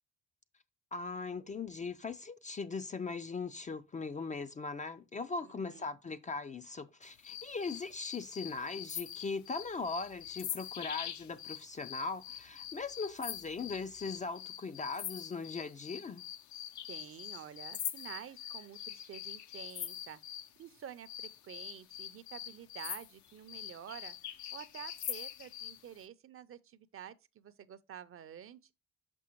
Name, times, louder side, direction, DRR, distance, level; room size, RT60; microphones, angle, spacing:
voice 1, 0.9-16.2, left 4 dB, 25° left, 0.3 m, -39 dB
voice 2, 5.4-5.8 16.9-20.2 20.6-24.2 24.5-28.7, right 9 dB, 45° right, 0.5 m, -49 dB
sound 1, 7.2-20.5 21.0-25.8, left 10 dB, 70° left, 0.6 m, -44 dB
6.2 x 5.4 x 2.9 m
cardioid pair, 90°, 30 cm